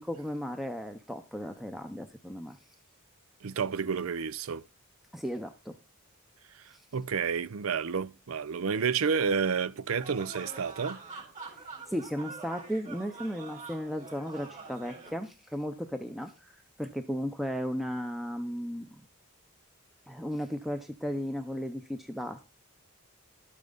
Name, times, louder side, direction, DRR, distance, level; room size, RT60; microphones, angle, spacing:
voice 1, 0.0-2.6 5.1-5.7 6.7-6.8 11.5-16.5 16.8-18.9 20.1-22.4, equal, ahead, 0.7 m, -35 dB
voice 2, 3.4-4.6 6.5-11.0, right 6 dB, 70° right, 0.5 m, -30 dB
sound 1, 10.0-15.1, right 4 dB, 35° right, 4.1 m, -45 dB
12.5 x 8.7 x 4.0 m
head